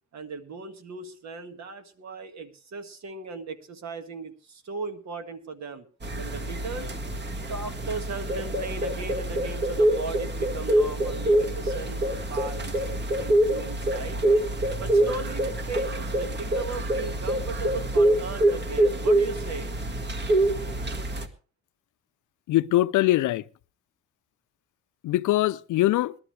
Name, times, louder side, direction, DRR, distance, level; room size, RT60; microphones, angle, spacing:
voice 1, 0.1-5.9 6.1-6.9 7.4-14.2 14.8-19.8, right 4 dB, 65° right, 1.9 m, -37 dB
sound 1, 6.0-21.3, right 1 dB, 35° right, 1.7 m, -25 dB
voice 2, 22.5-23.4 25.0-26.1, left 16 dB, 80° left, 0.6 m, -22 dB
20.5 x 12.5 x 3.3 m
cardioid pair, 90°, 30 cm